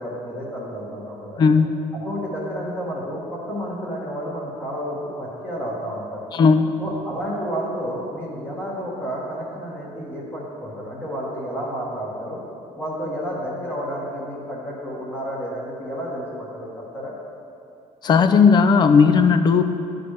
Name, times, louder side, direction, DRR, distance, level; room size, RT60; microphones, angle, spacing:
voice 1, 0.0-1.4 1.9-6.2 6.8-12.4 12.7-17.1, equal, 15° left, -6 dB, 1.2 m, -31 dB
voice 2, 1.4-1.8 6.3-6.8 18.0-19.6, left 5 dB, 35° left, 9 dB, 0.3 m, -15 dB
11.0 x 4.0 x 3.2 m, 2.7 s
cardioid pair, 130°, 13 cm